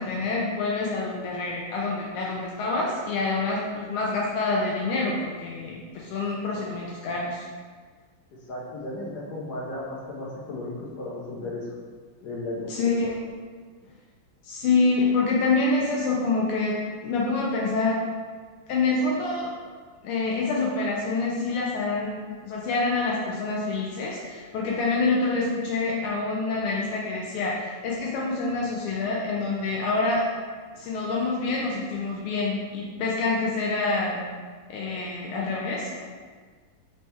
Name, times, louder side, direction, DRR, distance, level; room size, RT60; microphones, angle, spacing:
voice 1, 0.0-7.5 12.7-13.1 14.4-16.8 17.0-18.0 18.7-19.5 20.0-30.3 30.7-34.2 34.7-36.0, left 3 dB, 90° left, -4 dB, 1.5 m, -26 dB
voice 2, 8.5-11.7 12.2-12.7, left 2 dB, 65° left, -4 dB, 1.1 m, -34 dB
4.3 x 2.8 x 3.3 m, 1.5 s
omnidirectional pair, 2.4 m